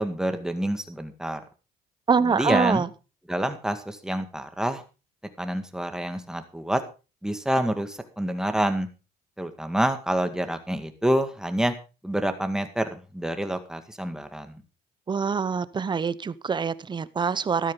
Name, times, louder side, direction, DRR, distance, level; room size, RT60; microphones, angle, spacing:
voice 1, 0.0-1.4 2.2-2.9 3.3-4.8 5.4-6.8 7.2-8.9 9.4-11.7 12.0-14.6, right 1 dB, 5° right, 7 dB, 2.0 m, -27 dB
voice 2, 2.1-2.9 15.1-17.7, right 5 dB, 25° right, 16 dB, 0.9 m, -25 dB
13.5 x 12.0 x 4.0 m, 0.33 s
cardioid pair, 110°, 17 cm